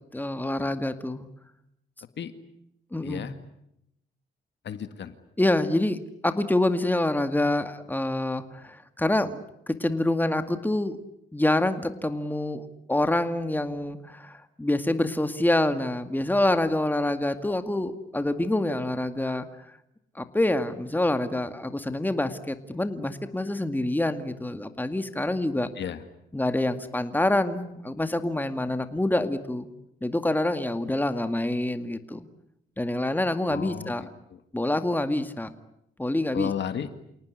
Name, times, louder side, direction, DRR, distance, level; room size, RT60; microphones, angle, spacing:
voice 1, 0.1-1.3 2.9-3.3 5.4-11.0 11.3-19.5 20.2-25.7 26.3-29.7 30.0-32.3 32.8-34.0 34.5-35.5 36.0-36.5, left 1 dB, 10° left, 9 dB, 2.1 m, -26 dB
voice 2, 3.0-3.4 4.6-5.1 25.8-26.0 33.5-34.4 36.3-36.9, left 8 dB, 65° left, 10 dB, 2.0 m, -33 dB
28.5 x 18.5 x 9.9 m, 0.80 s
cardioid pair, 75°, 20 cm